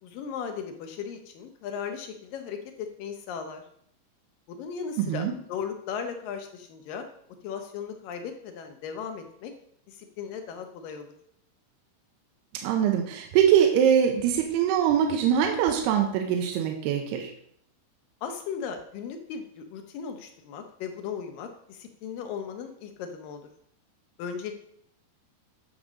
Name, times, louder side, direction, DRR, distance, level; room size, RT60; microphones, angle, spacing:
voice 1, 0.0-3.6 4.5-7.1 7.4-9.5 9.9-11.1 18.2-23.5 24.2-24.5, left 7 dB, 70° left, 5 dB, 2.5 m, -37 dB
voice 2, 5.0-5.3 12.5-17.3, right 9 dB, 85° right, 4 dB, 2.9 m, -23 dB
9.7 x 6.8 x 5.1 m, 0.67 s
omnidirectional pair, 4.6 m